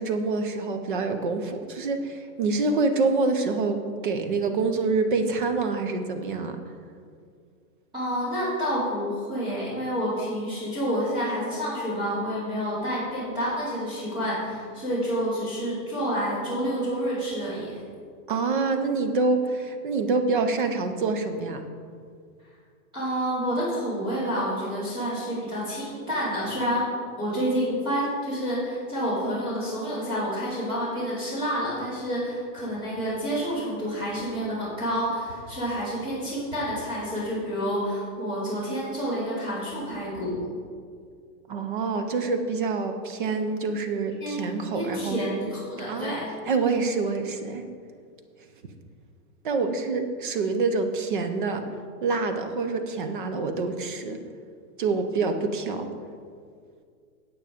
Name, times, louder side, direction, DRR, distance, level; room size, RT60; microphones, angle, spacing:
voice 1, 0.0-6.6 18.3-21.6 41.5-45.2 45.9-46.2 46.5-47.6 49.4-51.6 52.0-54.2 54.8-55.9, right 3 dB, 35° right, 7 dB, 0.6 m, -26 dB
voice 2, 7.9-17.8 22.9-26.9 27.2-40.4 44.2-44.5 44.7-46.3, equal, 10° right, -11 dB, 2.7 m, -29 dB
9.2 x 8.3 x 5.0 m, 2.2 s
supercardioid pair, 170°, 48 cm